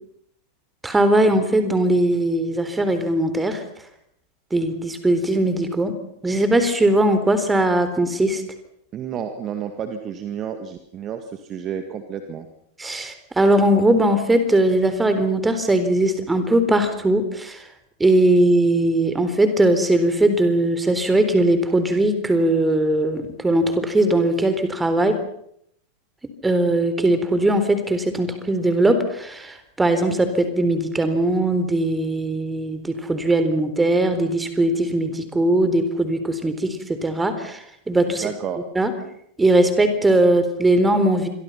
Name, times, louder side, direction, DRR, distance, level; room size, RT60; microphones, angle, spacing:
voice 1, 0.8-3.6 4.5-5.9 6.2-8.4 12.8-17.6 18.0-25.2 26.4-37.6 37.9-38.3 38.8-38.9 39.4-41.3, right 1 dB, 10° right, 9 dB, 4.0 m, -19 dB
voice 2, 8.9-12.5 38.2-38.6, right 8 dB, 30° right, 7 dB, 2.0 m, -30 dB
27.5 x 23.5 x 5.8 m, 0.71 s
figure-of-eight pair, 90°, 0 cm